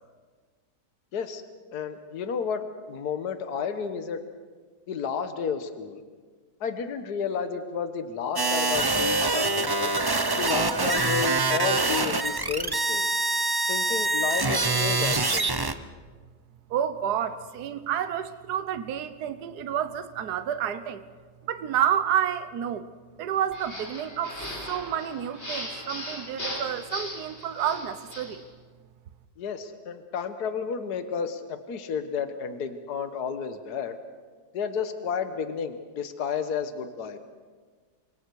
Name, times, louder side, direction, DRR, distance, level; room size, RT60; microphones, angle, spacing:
voice 1, 1.1-1.4 1.7-4.2 4.9-6.0 6.6-9.9 10.4-13.1 13.7-15.5 29.4-34.0 34.5-37.2, left 6 dB, 65° left, 8 dB, 1.8 m, -31 dB
sound 1, 8.4-15.7, right 3 dB, 35° right, 0.3 m, -25 dB
voice 2, 16.7-21.0 21.4-22.9 23.2-24.4 24.7-28.4, right 9 dB, 65° right, 11 dB, 1.5 m, -29 dB
sound 2, 23.5-28.4, left 1 dB, 35° left, 5.1 m, -38 dB
29.5 x 25.0 x 4.8 m, 1.5 s
omnidirectional pair, 1.9 m